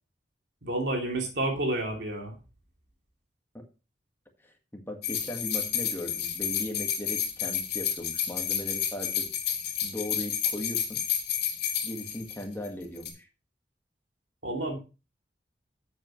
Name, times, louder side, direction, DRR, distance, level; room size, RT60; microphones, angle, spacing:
voice 1, 0.6-2.4 14.4-14.8, right 1 dB, 75° right, 1 dB, 2.9 m, -30 dB
voice 2, 4.7-9.3 9.8-11.0 11.8-13.3, left 1 dB, 15° left, 2 dB, 1.8 m, -38 dB
sound 1, 5.0-12.7 13.0-13.1, left 8 dB, 65° left, 2.5 m, -30 dB
10.5 x 7.9 x 3.2 m, 0.32 s
head